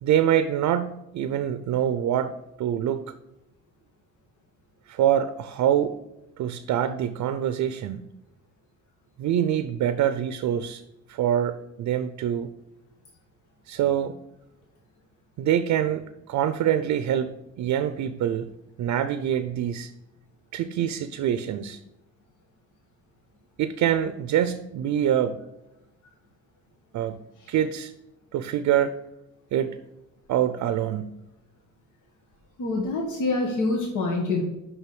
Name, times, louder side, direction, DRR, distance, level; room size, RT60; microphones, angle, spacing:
voice 1, 0.0-3.1 4.9-5.9 6.4-8.0 9.2-10.8 11.1-12.5 13.7-14.1 15.4-18.5 18.8-19.9 20.5-21.8 23.6-25.4 26.9-27.2 27.5-27.9 28.3-29.0 29.5-29.8 30.3-31.1, right 10 dB, 75° right, 11 dB, 0.6 m, -25 dB
voice 2, 32.6-34.4, left 3 dB, 80° left, 0 dB, 1.5 m, -26 dB
5.7 x 5.5 x 6.1 m, 0.94 s
cardioid pair, 90°, 30 cm